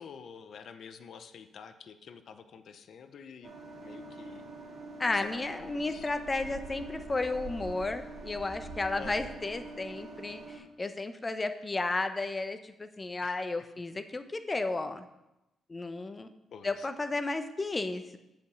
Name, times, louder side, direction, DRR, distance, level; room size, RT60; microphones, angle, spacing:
voice 1, 0.0-3.6 3.8-4.5 5.1-6.1 6.4-6.7 8.9-9.4 13.2-13.4 16.5-16.9, left 6 dB, 65° left, 9 dB, 0.7 m, -48 dB
sound 1, 3.4-10.6, right 2 dB, 55° right, 2.4 m, -44 dB
voice 2, 5.0-15.0 15.7-16.3 16.6-18.2, left 3 dB, 30° left, 9 dB, 0.9 m, -33 dB
7.8 x 5.3 x 7.0 m, 0.93 s
supercardioid pair, 60°, 0 cm